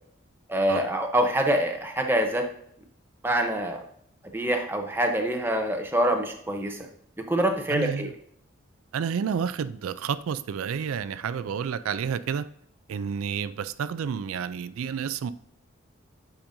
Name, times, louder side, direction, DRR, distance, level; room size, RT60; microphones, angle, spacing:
voice 1, 0.5-2.5 3.2-3.8 4.3-6.8 7.2-8.1, right 1 dB, 10° right, 0.7 m, -25 dB
voice 2, 7.7-8.1 8.9-12.5 12.9-15.3, right 7 dB, 85° right, 0.3 m, -30 dB
8.7 x 5.1 x 2.6 m
head